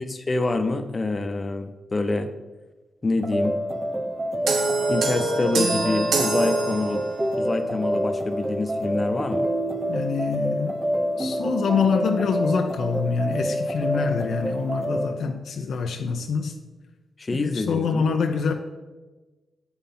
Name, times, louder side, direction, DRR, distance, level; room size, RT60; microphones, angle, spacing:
voice 1, 0.0-2.3 3.0-3.6 4.9-7.0 7.4-9.5 17.2-18.1, left 2 dB, 40° left, 9 dB, 0.8 m, -26 dB
sound 1, 3.2-15.1, equal, 20° right, 0.8 m, -27 dB
sound 2, 4.5-7.3, right 4 dB, 80° right, 1.0 m, -25 dB
voice 2, 9.9-10.8 11.2-16.5 17.3-18.5, left 5 dB, 75° left, 5 dB, 0.5 m, -25 dB
7.9 x 5.5 x 4.3 m, 1.2 s
supercardioid pair, 45°, 0 cm